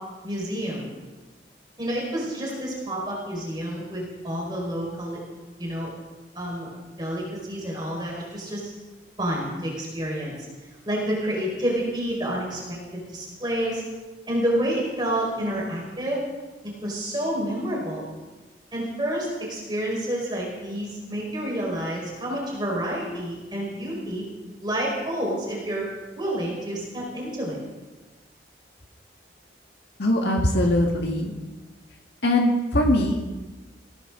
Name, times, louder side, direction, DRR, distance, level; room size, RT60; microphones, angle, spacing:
voice 1, 0.2-0.9 1.8-5.2 5.6-5.9 6.3-6.7 7.0-8.7 9.2-10.3 10.8-13.8 14.3-16.2 16.8-18.1 18.7-24.2 24.6-25.9 26.1-27.6, right 1 dB, 25° right, -3 dB, 5.0 m, -29 dB
voice 2, 30.0-31.3 32.2-33.2, left 1 dB, 75° left, 0 dB, 1.9 m, -21 dB
22.5 x 16.5 x 3.9 m, 1.2 s
head